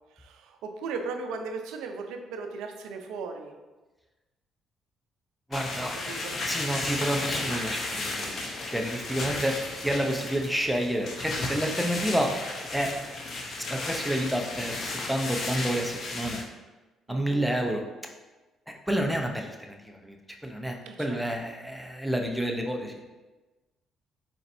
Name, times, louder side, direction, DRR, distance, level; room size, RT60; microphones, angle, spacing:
voice 1, 0.2-3.5 6.1-6.4 17.1-17.5 20.9-21.2, right 4 dB, 80° right, 5 dB, 0.5 m, -37 dB
sound 1, 5.5-16.4, left 2 dB, 60° left, 0.8 m, -34 dB
voice 2, 5.5-6.0 6.5-9.6 9.8-12.3 12.7-12.9 13.7-16.4 17.1-17.8 18.7-20.2 20.4-23.0, right 1 dB, ahead, 2 dB, 0.7 m, -29 dB
4.3 x 3.9 x 2.7 m, 1.2 s
supercardioid pair, 65°, 0 cm